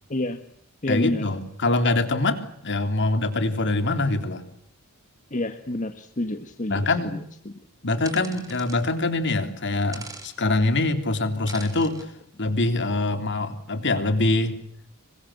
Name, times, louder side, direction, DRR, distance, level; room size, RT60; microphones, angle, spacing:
voice 1, 0.1-0.4 0.8-1.2 5.3-7.2 7.4-7.5, left 1 dB, 35° left, 7 dB, 1.7 m, -29 dB
voice 2, 0.9-4.4 6.7-7.2 7.8-12.1 12.4-14.6, left 2 dB, 55° left, 8 dB, 3.5 m, -24 dB
sound 1, 8.0-8.8 9.9-10.3 11.5-12.0, right 3 dB, 15° right, 6.3 m, -41 dB
27.0 x 24.0 x 8.1 m, 0.68 s
head